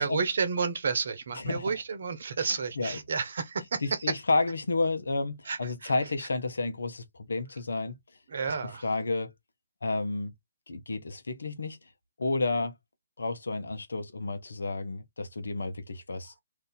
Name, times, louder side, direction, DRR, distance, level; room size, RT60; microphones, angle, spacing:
voice 1, 0.0-3.8 4.1-4.2 5.5-5.9 8.3-8.8, right 5 dB, 60° right, 0.9 m, -31 dB
voice 2, 1.3-1.7 2.4-3.0 3.8-7.9 8.8-9.3 9.8-10.3 10.7-11.8 12.2-12.7 13.2-16.3, left 3 dB, 75° left, 0.9 m, -31 dB
2.7 x 2.6 x 3.8 m
figure-of-eight pair, 140°, 0 cm